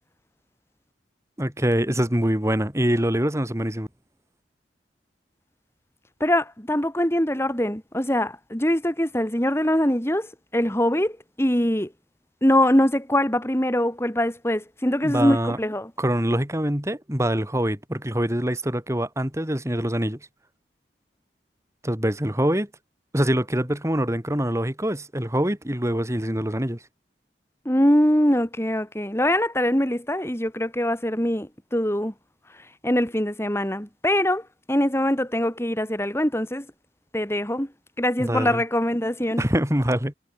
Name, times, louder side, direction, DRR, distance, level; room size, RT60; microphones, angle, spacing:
voice 1, 1.4-3.9 15.0-15.6 16.0-20.2 21.8-22.7 23.1-26.8 38.2-38.6 39.4-40.1, equal, 15° right, 3.4 m, -24 dB
voice 2, 6.2-10.3 10.5-11.9 12.4-15.9 27.7-32.1 32.8-36.7 37.1-37.7 38.0-39.4, left 1 dB, 15° left, 5.2 m, -23 dB
head